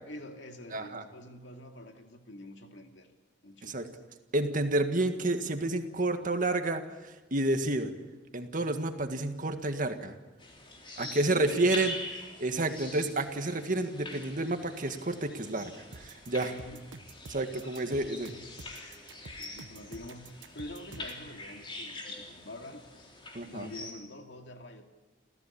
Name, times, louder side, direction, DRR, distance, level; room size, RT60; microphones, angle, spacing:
voice 1, 0.1-3.1 3.4-4.0 11.0-11.8 12.5-12.8 16.4-16.8 17.9-19.0 19.4-22.9 23.4-24.9, left 1 dB, 75° left, 4 dB, 2.4 m, -46 dB
voice 2, 0.7-1.0 3.6-3.9 4.3-7.9 8.3-10.2 11.0-11.9 12.4-16.5 17.3-18.3 23.3-23.7, right 2 dB, 45° right, 7 dB, 1.8 m, -30 dB
sound 1, 10.4-23.9, left 2 dB, 30° left, 3.8 m, -44 dB
sound 2, 15.9-21.2, right 3 dB, 80° right, 1.1 m, -48 dB
28.5 x 15.0 x 8.7 m, 1.2 s
head